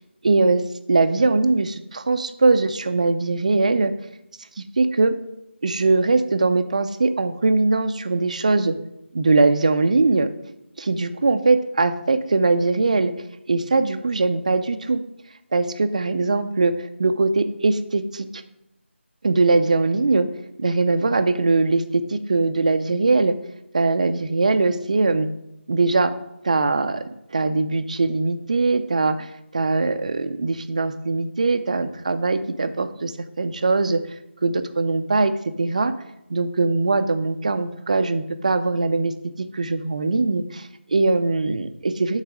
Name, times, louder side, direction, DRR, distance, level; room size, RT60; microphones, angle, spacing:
voice 1, 0.2-0.6 0.9-3.9 4.6-5.1 5.6-8.7 9.1-10.3 10.8-13.1 13.5-15.0 15.5-18.4 19.2-20.3 20.6-23.3 23.7-25.3 25.7-26.1 26.4-27.0 27.3-33.1 33.4-34.0 34.4-35.3 35.6-35.9 36.3-39.1 39.4-42.2, right 3 dB, 35° right, 10 dB, 0.5 m, -21 dB
8.5 x 4.0 x 6.0 m, 0.84 s
figure-of-eight pair, 170°, 7 cm